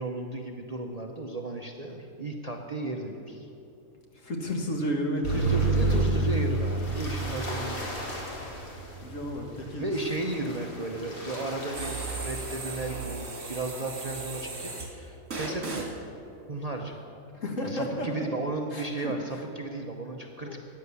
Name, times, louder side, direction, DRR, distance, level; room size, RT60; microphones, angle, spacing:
voice 1, 0.0-3.5 5.3-7.9 9.8-15.9 16.5-17.0 17.6-20.6, right 2 dB, 35° right, 2 dB, 0.7 m, -34 dB
voice 2, 4.1-6.0 9.0-9.9 17.3-18.3 18.7-19.4 20.4-20.6, equal, 65° left, 1 dB, 1.9 m, -32 dB
sound 1, 5.2-13.0, right 2 dB, 40° left, 2.4 m, -31 dB
sound 2, 11.7-14.9 15.3-15.9, right 3 dB, 65° right, 2.3 m, -36 dB
13.0 x 9.6 x 7.0 m, 2.8 s
omnidirectional pair, 1.5 m